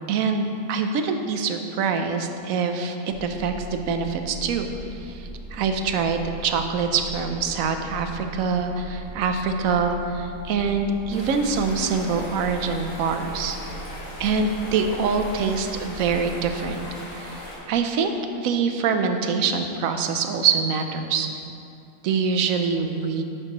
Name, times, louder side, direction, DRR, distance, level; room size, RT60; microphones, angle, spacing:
voice 1, 0.1-13.6 14.2-21.3 22.0-23.2, right 5 dB, 85° right, 6 dB, 1.0 m, -25 dB
sound 1, 3.1-16.8, equal, 40° left, 1.8 m, -40 dB
sound 2, 11.1-17.6, left 1 dB, 65° left, 2.2 m, -39 dB
10.0 x 6.6 x 3.0 m, 2.6 s
omnidirectional pair, 1.4 m